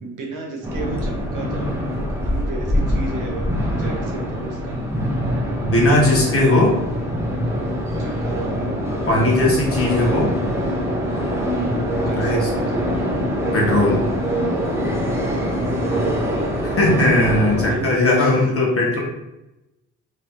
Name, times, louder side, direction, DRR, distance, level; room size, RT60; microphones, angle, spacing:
voice 1, 0.0-1.8 2.2-5.0 8.0-8.6 11.5-13.1 15.5-16.6 17.7-18.5, right 2 dB, 65° right, 0 dB, 1.2 m, -33 dB
sound 1, 0.6-17.8, equal, 10° right, 1.0 m, -23 dB
voice 2, 5.6-6.8 9.1-10.3 12.1-12.5 13.5-14.0 16.6-19.0, left 2 dB, 40° left, -3 dB, 1.5 m, -18 dB
3.5 x 3.2 x 2.9 m, 0.95 s
supercardioid pair, 65°, 33 cm